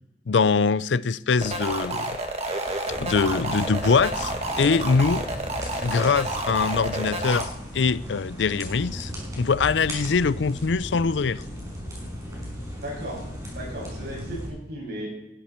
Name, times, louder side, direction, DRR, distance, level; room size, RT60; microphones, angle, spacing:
voice 1, 0.3-2.2 3.0-5.3 5.8-9.1 9.4-11.4, left 5 dB, 75° left, 0.5 m, -23 dB
sound 1, 1.4-7.4, right 1 dB, 35° right, 2.1 m, -30 dB
sound 2, 2.9-14.5, equal, 20° right, 5.2 m, -36 dB
voice 2, 12.8-13.3 13.5-15.1, equal, 60° right, 7.4 m, -35 dB
19.0 x 12.5 x 4.5 m
head